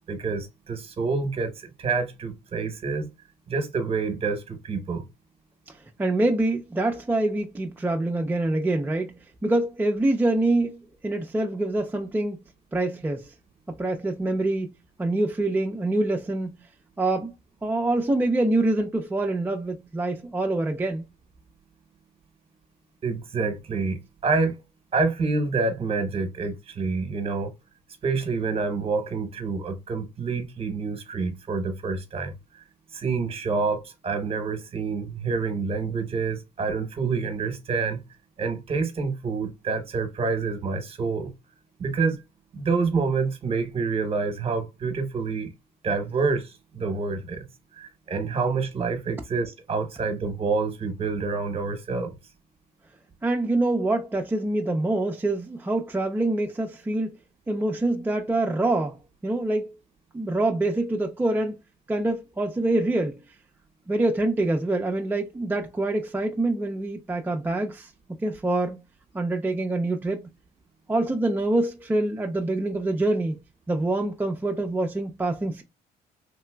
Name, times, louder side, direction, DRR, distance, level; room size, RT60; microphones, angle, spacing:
voice 1, 0.1-3.1 3.5-5.0 23.0-24.6 24.9-27.5 28.0-32.6 32.9-38.0 38.4-41.3 41.8-42.2 42.5-45.5 45.8-47.5 47.7-52.1, right 4 dB, 35° right, 0.9 m, -27 dB
voice 2, 5.7-12.4 12.7-13.3 13.7-14.7 15.0-16.6 17.0-17.3 17.6-21.1 53.2-57.1 57.5-59.7 60.1-61.6 61.9-63.2 63.9-68.8 69.1-70.3 70.9-73.4 73.7-75.6, right 2 dB, 10° right, 0.4 m, -25 dB
3.2 x 2.8 x 2.2 m
cardioid pair, 110°, 17 cm